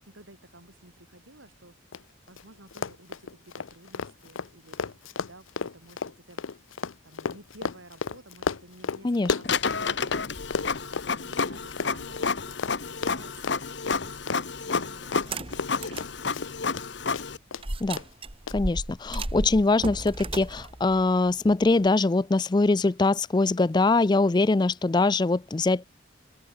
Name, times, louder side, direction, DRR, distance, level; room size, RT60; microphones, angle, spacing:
voice 1, 0.0-5.0 5.2-6.4 7.0-10.7 11.0-16.3, right 2 dB, 85° right, 7.9 m, -53 dB
Run, 1.9-2.0 2.3-2.4 2.7-10.2 10.5-16.9 17.1-17.6 18.0-18.1 18.5-18.6, left 5 dB, 85° left, 0.7 m, -32 dB
Printer, 9.4-17.4, left 5 dB, 60° left, 1.1 m, -30 dB
sound 1, 15.1-16.1 16.6-16.7 17.6-21.9, right 2 dB, 30° right, 1.8 m, -34 dB
voice 2, 18.5-25.8, left 3 dB, 20° left, 0.4 m, -23 dB
open air
head